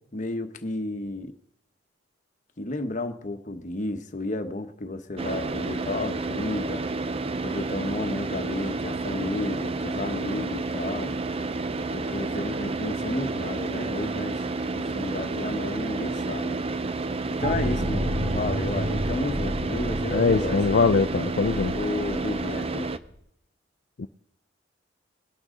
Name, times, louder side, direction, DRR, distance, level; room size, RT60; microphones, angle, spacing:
voice 1, 0.1-1.3 2.6-6.8 7.4-11.1 11.9-14.4 14.7-16.6 17.4-20.6 21.5-22.9, left 2 dB, 40° left, 7 dB, 1.1 m, -32 dB
Car / Idling, 5.2-23.0, right 3 dB, 30° right, 0.6 m, -30 dB
sound 1, 17.4-23.1, right 1 dB, 50° right, 4.8 m, -31 dB
voice 2, 20.1-21.7 24.0-24.1, left 4 dB, 60° left, 8 dB, 0.5 m, -22 dB
21.5 x 11.5 x 3.8 m, 0.76 s
head